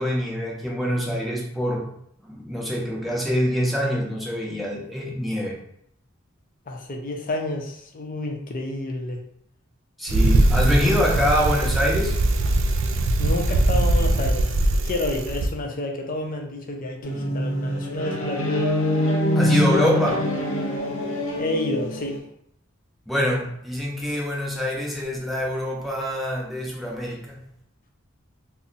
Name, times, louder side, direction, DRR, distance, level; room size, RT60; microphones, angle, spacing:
voice 1, 0.0-1.9 2.2-5.6 10.0-12.2 19.4-20.3 23.1-27.4, equal, ahead, -4 dB, 0.6 m, -25 dB
voice 2, 6.7-9.2 13.2-14.6 14.8-18.6 21.4-22.3, left 2 dB, 45° left, 2 dB, 0.5 m, -29 dB
Bicycle, 10.1-15.5, right 2 dB, 65° right, 0.4 m, -21 dB
sound 1, 17.0-22.2, left 1 dB, 85° left, 0.6 m, -24 dB
2.6 x 2.0 x 3.9 m, 0.70 s
head